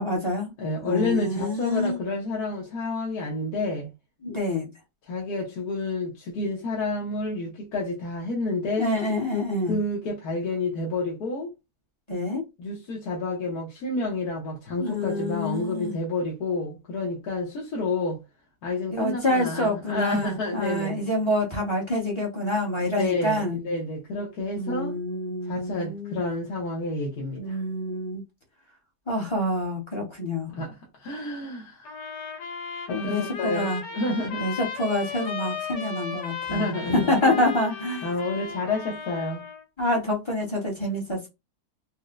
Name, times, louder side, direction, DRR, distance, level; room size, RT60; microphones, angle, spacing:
voice 1, 0.0-0.5 0.8-2.0 4.2-4.7 8.8-9.8 12.1-12.4 14.8-15.9 18.9-23.6 24.5-26.2 27.3-28.2 29.1-30.5 32.9-33.8 34.4-38.1 39.8-41.3, left 1 dB, 25° left, 0.8 m, -27 dB
voice 2, 0.6-3.9 5.0-8.9 9.7-11.5 12.6-18.2 18.6-21.0 22.9-25.0 25.5-27.6 30.5-32.0 32.9-34.5 36.5-37.3 38.0-39.4, left 2 dB, 65° left, 1.3 m, -29 dB
sound 1, 31.8-39.6, left 5 dB, 85° left, 1.6 m, -36 dB
4.1 x 2.1 x 2.4 m
omnidirectional pair, 1.8 m